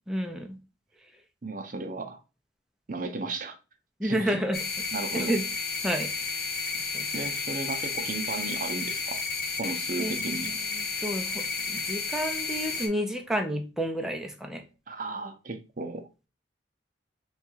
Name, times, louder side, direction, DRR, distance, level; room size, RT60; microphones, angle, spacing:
voice 1, 0.1-0.5 4.0-4.6 5.1-5.4 5.8-6.1 6.9-7.1 10.0-14.6, equal, 5° right, 0.5 m, -30 dB
voice 2, 1.4-2.2 2.9-3.6 4.0-4.4 4.9-5.3 7.1-9.2 9.6-10.5 14.9-16.1, right 3 dB, 45° right, 0.6 m, -35 dB
sound 1, 4.5-12.9, left 4 dB, 55° left, 0.6 m, -32 dB
3.7 x 2.4 x 4.3 m
head